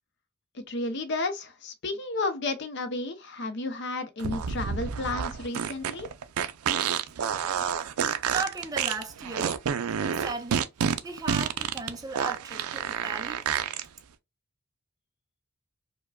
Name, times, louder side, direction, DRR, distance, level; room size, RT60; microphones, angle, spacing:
voice 1, 0.5-6.1, left 2 dB, 50° left, 0.6 m, -32 dB
sound 1, 4.2-13.8, right 7 dB, 80° right, 0.4 m, -29 dB
voice 2, 8.3-9.6 10.1-10.6 11.0-13.4, right 4 dB, 15° right, 0.5 m, -36 dB
4.8 x 2.2 x 2.2 m
head